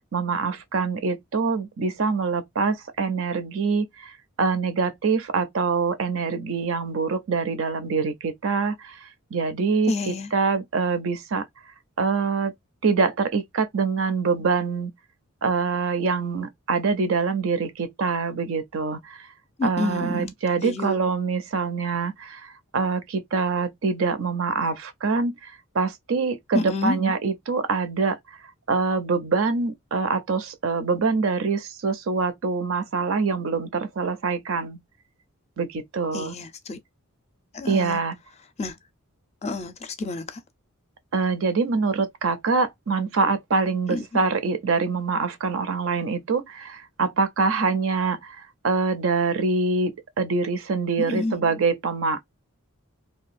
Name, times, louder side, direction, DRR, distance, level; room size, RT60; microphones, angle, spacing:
voice 1, 0.0-4.1 4.4-9.0 9.3-9.9 10.3-11.4 12.0-12.5 12.8-14.9 15.4-19.2 19.6-28.2 28.7-34.8 35.6-36.3 37.7-38.1 41.1-48.4 48.6-52.2, right 4 dB, 60° right, 0.5 m, -25 dB
voice 2, 9.9-10.3 19.6-20.3 20.6-21.0 26.5-27.0 36.1-36.8 37.5-38.0 38.6-38.8 39.4-40.4 43.9-44.1 51.0-51.4, left 2 dB, 30° left, 0.4 m, -29 dB
2.7 x 2.3 x 2.4 m
head